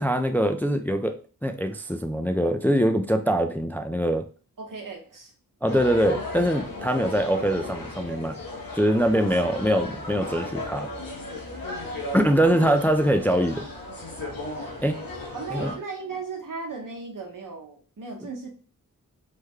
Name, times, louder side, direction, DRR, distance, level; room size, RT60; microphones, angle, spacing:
voice 1, 0.0-4.2 5.6-8.4 8.7-10.9 12.1-13.6 14.8-15.0 15.5-15.7, equal, 5° left, 7 dB, 0.3 m, -23 dB
voice 2, 4.6-5.3 9.1-9.4 12.4-12.6 15.3-18.5, right 4 dB, 65° right, 2 dB, 0.9 m, -36 dB
sound 1, 5.7-15.8, left 2 dB, 80° left, 1.0 m, -35 dB
3.2 x 2.1 x 3.5 m, 0.38 s
cardioid pair, 45°, 34 cm